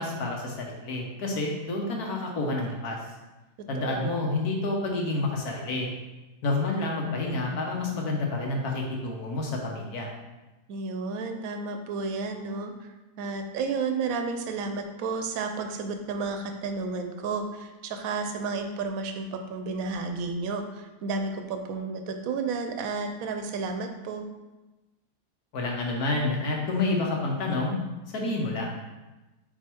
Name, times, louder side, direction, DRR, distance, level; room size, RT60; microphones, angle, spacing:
voice 1, 0.0-3.0 3.7-5.9 6.4-10.1 25.5-27.8 28.1-28.7, left 2 dB, 70° left, 0 dB, 1.5 m, -29 dB
voice 2, 3.8-4.2 10.7-12.7 13.2-24.3, right 4 dB, 65° right, 6 dB, 1.0 m, -32 dB
4.7 x 4.6 x 4.4 m, 1.1 s
omnidirectional pair, 1.7 m